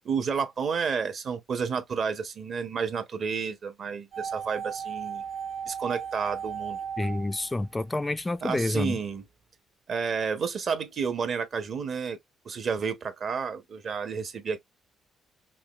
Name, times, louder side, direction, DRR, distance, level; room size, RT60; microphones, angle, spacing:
voice 1, 0.0-5.2 5.7-6.8 8.4-9.3 9.9-12.2 12.4-14.6, right 6 dB, 55° right, 1.0 m, -31 dB
sound 1, 4.1-8.2 8.5-8.6, right 7 dB, 70° right, 1.4 m, -36 dB
voice 2, 7.0-9.0, left 2 dB, 15° left, 0.3 m, -28 dB
5.7 x 2.2 x 3.0 m
cardioid pair, 90°, 0 cm